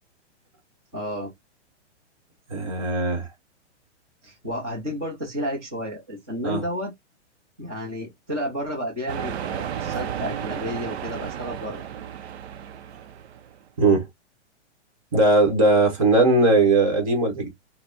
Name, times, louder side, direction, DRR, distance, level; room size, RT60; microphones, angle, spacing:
voice 1, 0.9-1.3 4.2-6.9 7.6-11.9, equal, 10° right, 0.6 m, -31 dB
voice 2, 2.5-3.3 6.4-6.6 13.8-14.1 15.1-17.5, right 2 dB, 30° right, 1.1 m, -19 dB
sound 1, 9.1-13.6, right 9 dB, 65° right, 0.5 m, -33 dB
5.1 x 2.0 x 2.5 m
hypercardioid pair, 180°, 36 cm